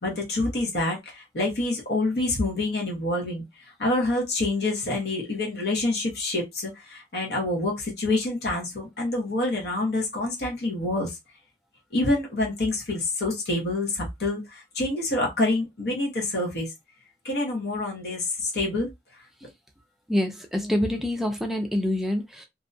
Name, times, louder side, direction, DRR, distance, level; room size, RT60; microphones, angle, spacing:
voice 1, 0.0-3.4 3.8-11.2 11.9-16.7 17.2-18.9, left 2 dB, 65° left, 0.9 m, -27 dB
voice 2, 20.1-22.5, left 1 dB, ahead, 0.3 m, -26 dB
2.6 x 2.1 x 2.6 m
head